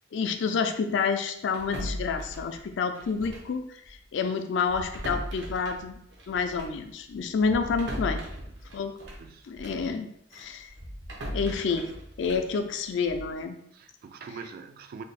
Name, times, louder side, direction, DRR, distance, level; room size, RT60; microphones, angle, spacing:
voice 1, 0.1-6.0 6.3-8.2 8.7-9.0 9.5-10.1 10.3-10.7 11.3-11.9 12.2-13.6, left 5 dB, 70° left, 7 dB, 0.4 m, -29 dB
sound 1, 1.5-3.6 3.8-4.0 4.6-9.9 10.3-13.4, equal, 80° right, 0.7 m, -39 dB
voice 2, 8.3-8.8 9.2-9.5 13.7-15.0, right 5 dB, 55° right, 8 dB, 0.3 m, -44 dB
3.3 x 2.0 x 4.0 m, 0.73 s
head